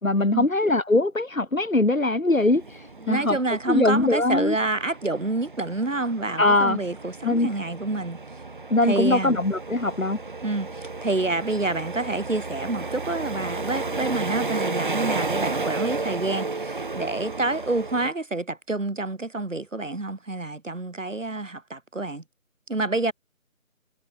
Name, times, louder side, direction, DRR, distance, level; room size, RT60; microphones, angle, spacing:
voice 1, 0.0-2.6 3.1-3.4 3.7-4.6 6.4-6.8 7.2-7.5 8.7-10.2, left 2 dB, 75° left, 4.1 m, -21 dB
sound 1, 2.3-18.1, right 3 dB, 35° right, 3.3 m, -33 dB
voice 2, 3.0-8.2 8.8-9.4 10.4-22.2 22.7-23.1, right 2 dB, 65° right, 3.5 m, -28 dB
figure-of-eight pair, 170°, 41 cm